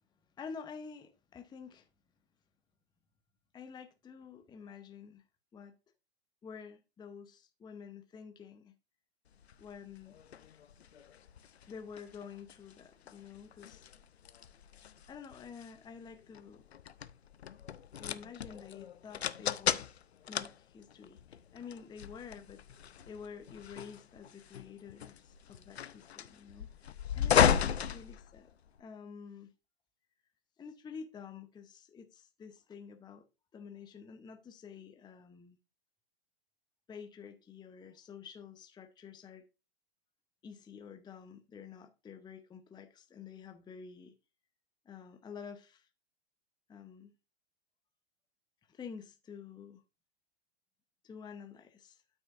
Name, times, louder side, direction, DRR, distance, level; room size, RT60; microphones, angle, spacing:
voice 1, 0.4-1.9 3.5-5.2 5.5-5.7 6.4-8.7 9.6-10.2 11.7-13.9 15.1-16.6 18.0-19.9 20.3-22.6 23.1-28.5 28.8-29.5 30.6-33.3 33.5-35.6 36.9-39.4 40.4-44.1 44.8-45.9 46.7-47.1 48.7-49.8 51.0-52.0, left 6 dB, 15° left, 0.8 m, -49 dB
sound 1, 9.4-28.8, left 8 dB, 80° left, 0.7 m, -35 dB
12.0 x 6.3 x 2.5 m
hypercardioid pair, 105°, 31 cm